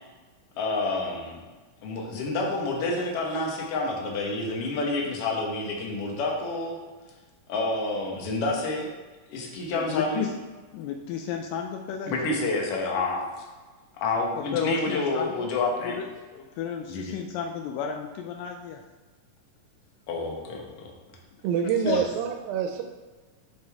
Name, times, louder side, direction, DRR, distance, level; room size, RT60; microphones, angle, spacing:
voice 1, 0.6-1.4 1.8-6.8 7.5-8.9 9.3-10.3 12.1-13.2 14.0-16.0 16.9-17.1 20.1-20.9 21.9-22.0, left 2 dB, 60° left, -1 dB, 1.6 m, -28 dB
voice 2, 9.7-10.3 10.7-12.4 14.3-15.5 15.8-16.1 16.3-18.8 21.8-22.1, left 7 dB, 80° left, 4 dB, 2.1 m, -32 dB
voice 3, 21.4-22.8, right 7 dB, 90° right, 4 dB, 2.4 m, -26 dB
7.7 x 5.4 x 3.5 m, 1.3 s
omnidirectional pair, 4.0 m